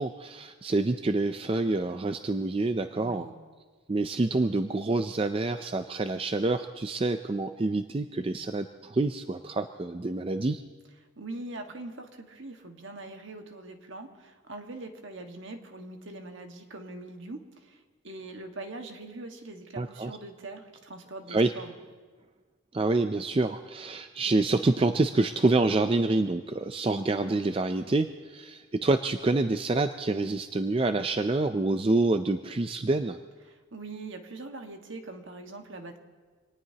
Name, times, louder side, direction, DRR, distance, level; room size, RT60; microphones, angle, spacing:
voice 1, 0.0-3.3 3.9-10.6 19.8-20.1 21.3-21.5 22.7-33.2, right 2 dB, 25° right, 9 dB, 0.4 m, -27 dB
voice 2, 2.9-3.3 11.2-21.7 33.5-36.0, right 2 dB, 65° right, 4 dB, 1.6 m, -42 dB
26.0 x 19.0 x 2.9 m, 1.4 s
head